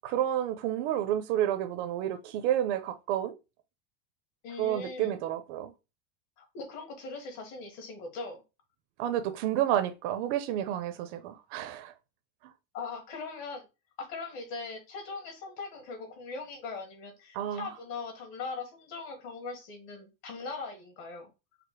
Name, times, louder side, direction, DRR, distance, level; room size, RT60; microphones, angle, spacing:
voice 1, 0.0-3.3 4.6-5.7 9.0-11.9 17.3-17.7, right 11 dB, 55° right, 0.6 m, -30 dB
voice 2, 4.4-5.2 6.4-8.4 12.7-13.6 14.0-21.3, left 4 dB, 45° left, 1.7 m, -40 dB
5.1 x 2.0 x 4.6 m
supercardioid pair, 160°, 40 cm